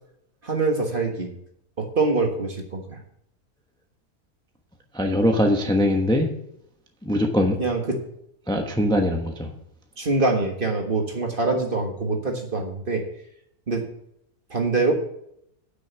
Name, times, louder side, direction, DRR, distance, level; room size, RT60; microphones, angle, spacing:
voice 1, 0.4-1.3 1.8-3.0 7.6-8.0 10.0-13.1 13.7-13.8 14.5-14.9, right 3 dB, 35° right, 2 dB, 1.6 m, -24 dB
voice 2, 4.9-6.3 7.0-7.6 8.5-9.5, left 1 dB, 5° left, 2 dB, 1.0 m, -21 dB
9.4 x 6.3 x 7.0 m, 0.74 s
omnidirectional pair, 1.5 m